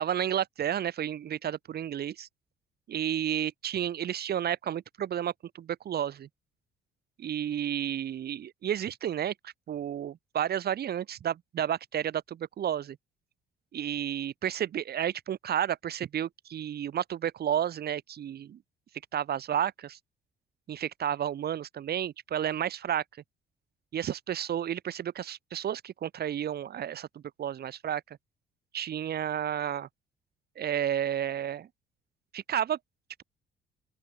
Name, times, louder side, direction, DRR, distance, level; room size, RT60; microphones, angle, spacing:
voice 1, 0.0-2.3 2.9-6.3 7.2-13.0 13.7-18.6 19.1-20.0 20.7-23.0 23.9-28.2 28.7-29.9 30.6-31.7 32.3-32.8, right 10 dB, 50° right, 7.9 m, -31 dB
open air
figure-of-eight pair, 45°, 21 cm